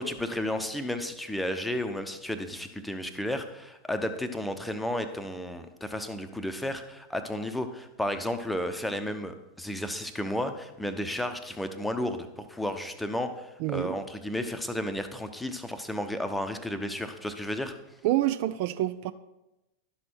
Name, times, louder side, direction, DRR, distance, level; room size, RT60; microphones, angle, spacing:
voice 1, 0.0-17.8, left 1 dB, 5° left, 0.8 m, -33 dB
voice 2, 13.6-14.0 18.0-19.1, right 14 dB, 45° right, 0.4 m, -27 dB
11.5 x 6.2 x 4.4 m
figure-of-eight pair, 90°, 0 cm